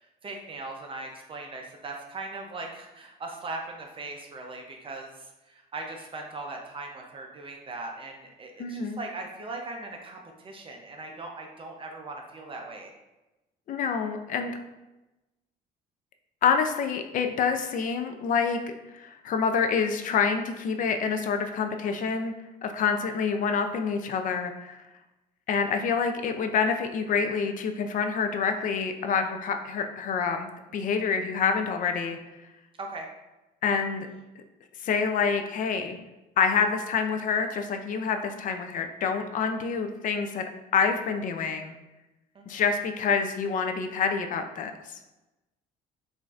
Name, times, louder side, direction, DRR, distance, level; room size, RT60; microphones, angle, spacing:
voice 1, 0.0-12.9 22.9-23.2 32.8-33.1 42.3-42.6, right 2 dB, 30° right, 1 dB, 0.5 m, -39 dB
voice 2, 8.6-9.0 13.7-14.5 16.4-18.6 18.9-22.3 22.6-24.8 25.5-32.2 33.6-34.1 34.8-36.0 36.4-40.5 40.7-41.7 42.5-45.0, left 6 dB, 50° left, 6 dB, 0.4 m, -27 dB
5.1 x 2.5 x 2.4 m, 1.0 s
cardioid pair, 110°, 17 cm